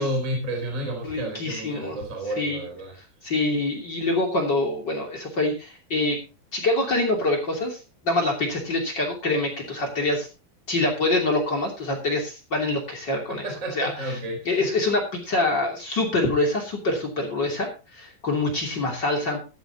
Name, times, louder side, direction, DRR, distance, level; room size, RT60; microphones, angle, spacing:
voice 1, 0.0-2.9 13.4-14.7, right 1 dB, 20° right, 1 dB, 4.1 m, -31 dB
voice 2, 1.0-2.0 2.2-2.6 3.2-6.2 6.5-7.8 8.0-10.3 10.7-14.2 14.4-19.4, left 2 dB, 30° left, 0 dB, 3.2 m, -25 dB
15.0 x 13.0 x 2.9 m, 0.30 s
omnidirectional pair, 4.3 m